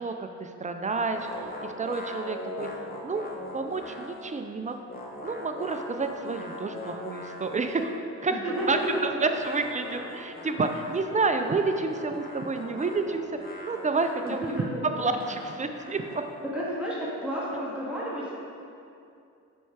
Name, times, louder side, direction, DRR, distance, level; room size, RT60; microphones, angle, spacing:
voice 1, 0.0-2.7 3.0-3.2 3.5-4.8 5.2-8.0 8.2-8.3 8.7-13.2 13.6-14.5 14.8-16.2, right 3 dB, 25° right, 6 dB, 0.4 m, -29 dB
sound 1, 1.1-4.4 4.7-8.0 8.5-16.5, left 1 dB, 30° left, 1.1 m, -41 dB
voice 2, 8.3-9.2 14.2-15.1 16.5-18.3, equal, 5° right, -8 dB, 1.7 m, -31 dB
7.0 x 4.6 x 4.7 m, 2.5 s
cardioid pair, 90°, 30 cm